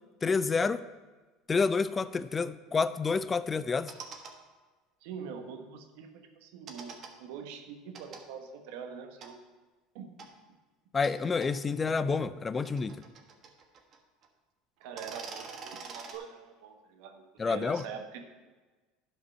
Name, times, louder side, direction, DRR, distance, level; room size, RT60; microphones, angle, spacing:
voice 1, 0.2-0.8 1.5-3.9 10.9-13.0 17.4-17.8, left 4 dB, 25° left, 15 dB, 0.4 m, -29 dB
sound 1, 2.0-2.2 3.7-4.3 6.7-7.1 7.9-8.2 9.2-9.3 10.2-10.3 11.0-11.1 11.4-11.5 12.4-14.0 14.2-14.3 14.8-16.2, right 5 dB, 45° right, 1.4 m, -45 dB
voice 2, 5.0-6.9 7.2-9.4 9.9-10.2 14.8-18.2, right 6 dB, 75° right, 5 dB, 1.2 m, -44 dB
11.5 x 5.1 x 5.5 m, 1.3 s
supercardioid pair, 95°, 0 cm